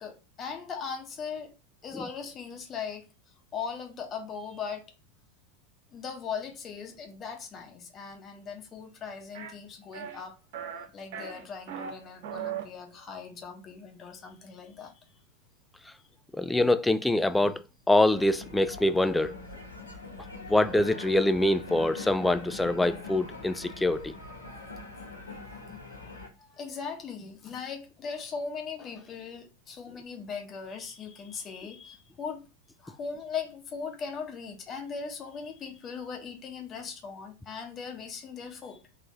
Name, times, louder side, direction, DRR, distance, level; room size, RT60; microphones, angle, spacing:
voice 1, 0.0-1.6 1.8-4.9 5.9-10.4 10.9-14.9 25.7-32.5 32.8-38.8, left 6 dB, 25° left, 0.9 m, -39 dB
sound 1, 9.3-9.5 9.9-10.2 10.5-10.8 11.1-11.9 12.2-12.6, right 8 dB, 50° right, 1.5 m, -37 dB
voice 2, 16.3-19.4 20.5-24.1, left 1 dB, 5° left, 0.3 m, -25 dB
sound 2, 18.1-26.3, left 3 dB, 85° left, 1.4 m, -43 dB
3.5 x 2.6 x 4.0 m
figure-of-eight pair, 90°, 0 cm